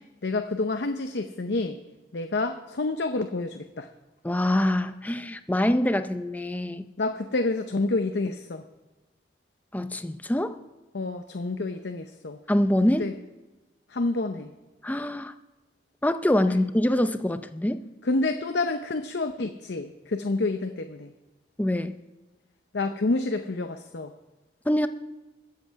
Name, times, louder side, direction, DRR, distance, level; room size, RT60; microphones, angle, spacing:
voice 1, 0.2-1.8 2.1-3.9 7.0-8.6 10.9-12.4 13.0-13.1 13.9-14.5 18.0-21.1 22.7-24.1, left 2 dB, 70° left, 6 dB, 0.7 m, -28 dB
voice 2, 4.2-6.8 9.7-10.6 12.5-13.1 14.8-15.3 16.0-17.8 21.6-22.0 24.7-24.9, left 1 dB, 10° left, 10 dB, 0.5 m, -24 dB
21.5 x 7.8 x 4.7 m, 1.1 s
head